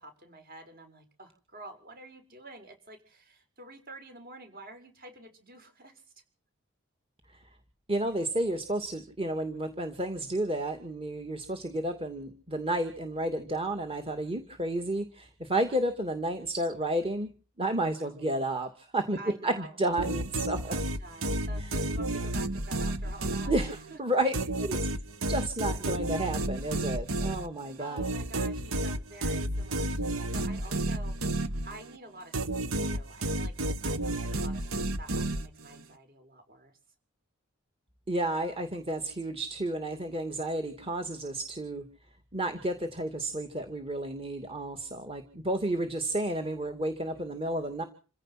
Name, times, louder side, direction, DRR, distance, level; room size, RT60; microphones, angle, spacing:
voice 1, 0.0-6.0 18.0-18.5 19.2-19.8 20.7-24.0 27.1-27.4 27.8-36.7, right 2 dB, 45° right, 6 dB, 6.5 m, -49 dB
voice 2, 7.9-17.3 17.6-19.2 19.4-20.7 21.6-21.7 23.5-24.3 24.6-24.8 25.3-28.0 38.1-41.8 42.3-47.8, right 1 dB, 25° right, 5 dB, 2.4 m, -31 dB
sound 1, 20.0-24.0 24.3-32.0 32.3-35.8, right 1 dB, 75° right, 1.6 m, -31 dB
27.5 x 16.5 x 6.0 m, 0.39 s
head